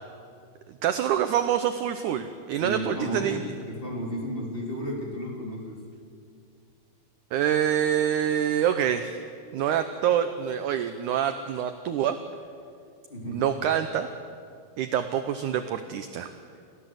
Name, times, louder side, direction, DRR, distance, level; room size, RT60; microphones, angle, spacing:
voice 1, 0.8-3.4 7.3-9.2 9.5-12.2 13.3-14.1 14.8-16.3, right 9 dB, 75° right, 9 dB, 1.9 m, -26 dB
voice 2, 2.6-5.8 13.1-13.7, equal, 15° left, -2 dB, 3.4 m, -33 dB
29.0 x 15.0 x 8.0 m, 2.3 s
omnidirectional pair, 4.4 m